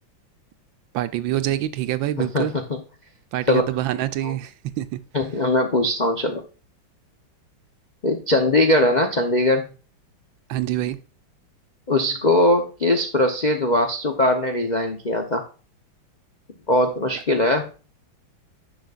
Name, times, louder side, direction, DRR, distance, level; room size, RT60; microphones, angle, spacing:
voice 1, 0.9-2.5 3.3-5.0 10.5-11.0, right 13 dB, 75° right, 1.4 m, -26 dB
voice 2, 2.2-2.8 3.5-3.6 4.2-4.3 5.1-6.4 8.0-9.7 11.9-15.4 16.7-17.7, left 1 dB, 60° left, 0.4 m, -20 dB
10.5 x 6.2 x 2.4 m
omnidirectional pair, 2.2 m